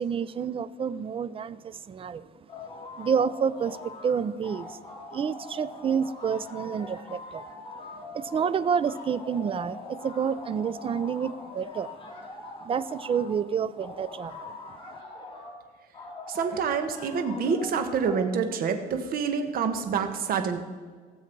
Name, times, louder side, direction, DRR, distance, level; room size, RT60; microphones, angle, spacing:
voice 1, 0.0-2.3 3.0-4.8 5.1-7.4 8.1-12.0 12.6-14.6, right 7 dB, 35° right, 17 dB, 0.5 m, -29 dB
sound 1, 2.5-4.1 4.4-13.3 13.8-15.5 15.9-18.3, left 3 dB, 30° left, 3.0 m, -42 dB
voice 2, 16.3-20.6, right 6 dB, 60° right, 7 dB, 1.4 m, -27 dB
17.0 x 7.2 x 4.6 m, 1.5 s
cardioid pair, 110°, 17 cm